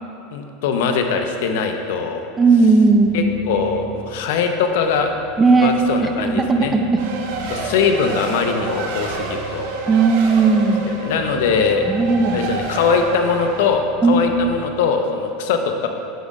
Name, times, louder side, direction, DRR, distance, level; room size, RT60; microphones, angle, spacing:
voice 1, 0.3-2.3 3.1-5.1 5.6-6.7 7.5-9.7 10.9-11.8 12.3-15.9, left 5 dB, 75° left, 5 dB, 0.7 m, -21 dB
voice 2, 2.4-3.2 5.4-5.7 6.0-7.0 9.9-10.8 11.9-12.4 14.0-14.2, right 4 dB, 15° right, 4 dB, 0.5 m, -15 dB
sound 1, 2.9-14.6, equal, 40° left, 0.6 m, -40 dB
Race car auto racing, 7.0-13.7, right 3 dB, 80° right, 1.0 m, -29 dB
9.1 x 3.7 x 5.3 m, 2.6 s
supercardioid pair, 155°, 0 cm